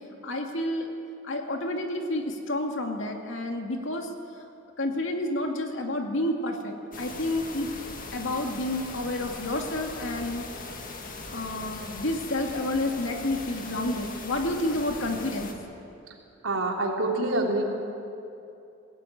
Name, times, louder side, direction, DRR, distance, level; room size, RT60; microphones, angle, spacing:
voice 1, 0.2-0.9 1.2-4.1 4.8-7.7 8.1-10.5 11.3-15.5, left 1 dB, 65° left, 3 dB, 2.4 m, -30 dB
sound 1, 6.9-15.5, left 3 dB, 45° left, 2.0 m, -40 dB
voice 2, 16.4-17.6, right 2 dB, 75° right, -1 dB, 3.7 m, -26 dB
21.0 x 16.5 x 9.4 m, 2.7 s
head